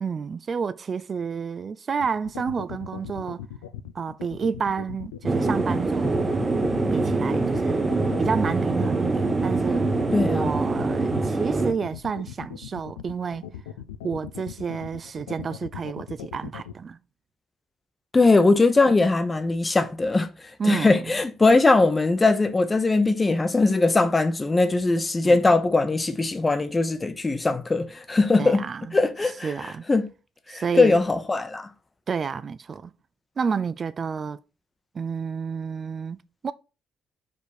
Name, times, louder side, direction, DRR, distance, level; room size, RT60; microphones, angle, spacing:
voice 1, 0.0-3.5 3.9-6.3 6.9-7.8 8.2-13.5 14.0-17.0 20.6-21.0 25.2-25.4 28.4-28.9 29.4-29.8 30.5-31.0 32.1-32.9 33.4-34.4 34.9-36.5, right 6 dB, 45° right, 0.3 m, -30 dB
sound 1, 2.0-16.7, left 10 dB, 80° left, 0.4 m, -38 dB
sound 2, 5.3-11.7, right 3 dB, 25° right, 1.0 m, -24 dB
voice 2, 10.1-10.5 18.1-20.3 20.6-28.6 28.9-30.1 30.5-31.7, left 3 dB, 25° left, 0.9 m, -20 dB
5.2 x 4.6 x 4.1 m
hypercardioid pair, 45°, 0 cm